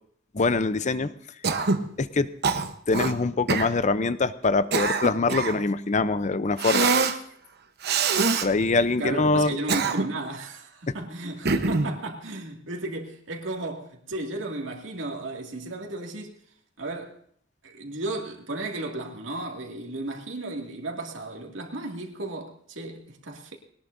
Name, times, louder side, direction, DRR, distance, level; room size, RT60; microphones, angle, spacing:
voice 1, 0.3-1.1 2.0-2.3 2.9-6.9 8.4-9.6, left 3 dB, 40° left, 0.6 m, -24 dB
Cough, 1.4-1.9 2.4-3.1 3.5-3.7 4.4-5.6 6.6-7.2 7.8-8.5 9.4-10.3 11.5-11.9, right 4 dB, 55° right, 1.0 m, -24 dB
voice 2, 9.0-16.4 16.8-17.2 17.6-23.6, right 2 dB, 80° right, 2.3 m, -34 dB
21.0 x 18.5 x 2.7 m
head